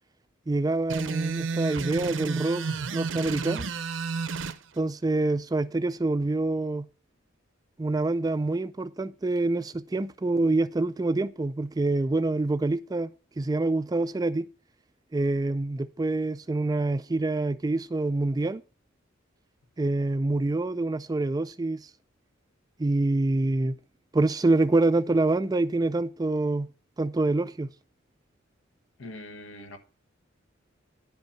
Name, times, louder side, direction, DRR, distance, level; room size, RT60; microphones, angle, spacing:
voice 1, 0.5-2.6 2.9-3.7 4.8-6.9 7.8-13.1 13.4-14.5 15.1-18.6 19.8-21.9 22.8-23.8 24.1-26.7 27.0-27.7, right 2 dB, 20° right, 0.3 m, -26 dB
sound 1, 0.9-4.6, right 4 dB, 70° right, 0.7 m, -31 dB
voice 2, 29.0-29.8, left 1 dB, 80° left, 1.5 m, -42 dB
10.5 x 5.4 x 5.7 m
head